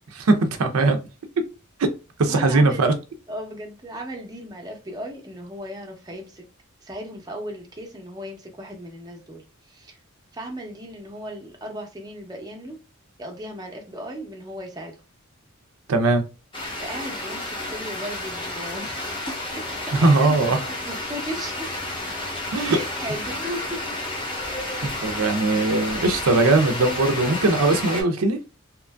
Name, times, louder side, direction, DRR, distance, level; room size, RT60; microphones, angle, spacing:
voice 1, 0.3-1.0 2.2-2.9 15.9-16.2 19.9-20.6 22.5-22.8 25.0-28.4, right 2 dB, 80° right, 0.5 m, -19 dB
voice 2, 2.2-3.0 3.3-6.4 6.8-9.4 9.7-10.0 10.3-12.8 13.2-15.0 16.8-21.7 22.6-23.8, equal, 20° right, 0.6 m, -36 dB
sound 1, 16.5-28.0, left 1 dB, 25° left, 0.7 m, -31 dB
2.9 x 2.5 x 2.2 m
head